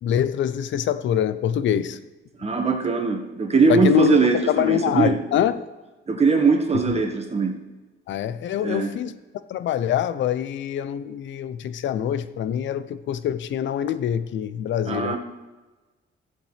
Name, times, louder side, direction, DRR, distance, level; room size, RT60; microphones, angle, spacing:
voice 1, 0.0-2.0 3.7-5.6 8.1-9.1 9.5-15.2, left 10 dB, 70° left, 13 dB, 0.6 m, -24 dB
voice 2, 2.4-5.2 6.1-7.6 8.6-8.9 14.9-15.2, right 4 dB, 30° right, 3 dB, 1.6 m, -21 dB
14.0 x 8.1 x 3.4 m, 1.2 s
cardioid pair, 90°, 20 cm